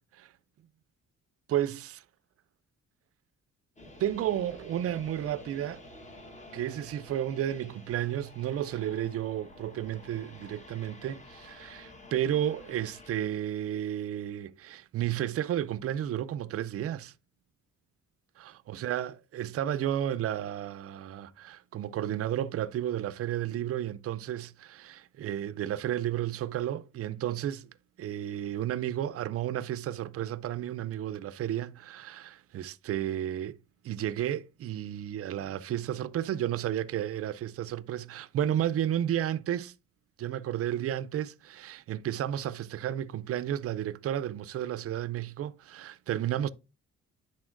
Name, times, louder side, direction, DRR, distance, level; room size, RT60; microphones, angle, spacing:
voice 1, 1.5-2.0 4.0-5.8 6.5-17.1 18.4-27.7 28.0-33.6 33.8-39.7 40.2-46.5, right 11 dB, 50° right, 0.5 m, -32 dB
sound 1, 3.8-13.2, left 1 dB, 25° left, 1.2 m, -50 dB
10.5 x 4.1 x 2.5 m
cardioid pair, 90°, 30 cm